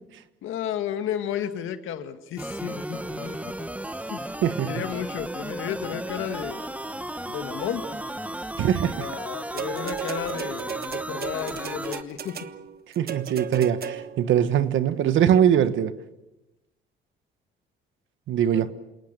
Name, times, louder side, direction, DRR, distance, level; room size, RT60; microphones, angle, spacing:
voice 1, 0.4-3.4 4.1-4.3 4.6-6.7 7.3-7.9 9.0-12.4 18.5-18.7, left 9 dB, 85° left, 8 dB, 1.9 m, -33 dB
sound 1, 2.4-12.0, right 1 dB, 5° right, 1.2 m, -34 dB
voice 2, 4.4-4.7 8.6-9.1 13.0-16.0 18.3-18.7, right 9 dB, 75° right, 12 dB, 1.4 m, -22 dB
sound 2, 9.6-14.3 15.3-15.4, right 7 dB, 50° right, 1.4 m, -35 dB
28.0 x 19.0 x 6.8 m, 0.96 s
cardioid pair, 90°, 20 cm